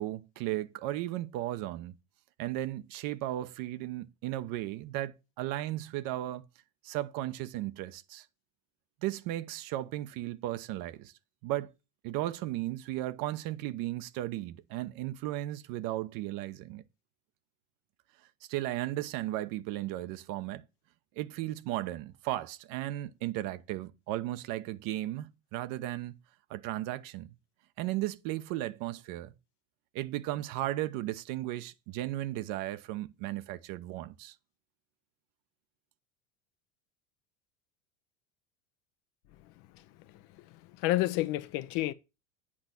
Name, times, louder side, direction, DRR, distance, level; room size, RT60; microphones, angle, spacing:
voice 1, 0.0-1.9 2.4-6.4 6.8-8.3 9.0-11.1 11.4-11.7 12.0-16.8 18.5-20.6 21.2-26.1 26.5-27.3 27.8-29.3 29.9-34.3, right 15 dB, 60° right, 0.9 m, -35 dB
voice 2, 40.4-41.9, left 16 dB, 60° left, 0.9 m, -30 dB
8.8 x 5.2 x 5.9 m
hypercardioid pair, 95°, 39 cm